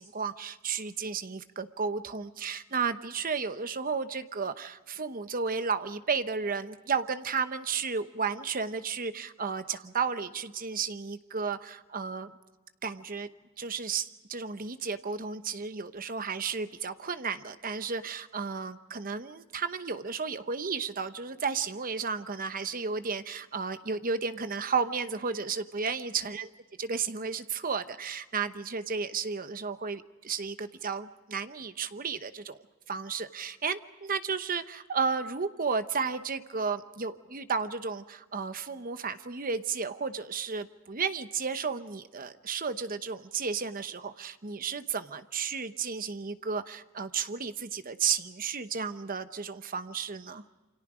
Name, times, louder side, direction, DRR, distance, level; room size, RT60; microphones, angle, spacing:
voice 1, 0.0-12.3 12.8-13.3 13.6-26.5 26.8-32.6 32.9-50.4, right 5 dB, 40° right, 11 dB, 0.9 m, -33 dB
28.5 x 25.5 x 5.0 m, 1.2 s
head